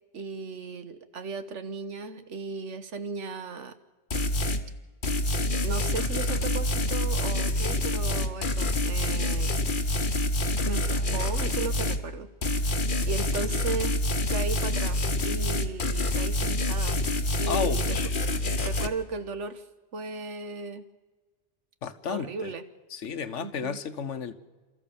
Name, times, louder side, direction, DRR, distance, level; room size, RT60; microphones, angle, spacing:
voice 1, 0.1-3.7 5.5-9.5 10.7-14.0 14.3-17.0 17.4-18.0 18.6-19.6 19.9-20.8 22.1-22.6 23.4-23.8, right 4 dB, 85° right, 10 dB, 1.5 m, -36 dB
sound 1, 4.1-4.6 5.0-12.0 12.4-18.9, left 1 dB, 45° left, 1.3 m, -27 dB
voice 2, 17.5-18.2 21.8-22.5 22.9-24.3, left 6 dB, 90° left, 11 dB, 1.4 m, -32 dB
29.0 x 13.5 x 7.0 m, 1.3 s
omnidirectional pair, 1.2 m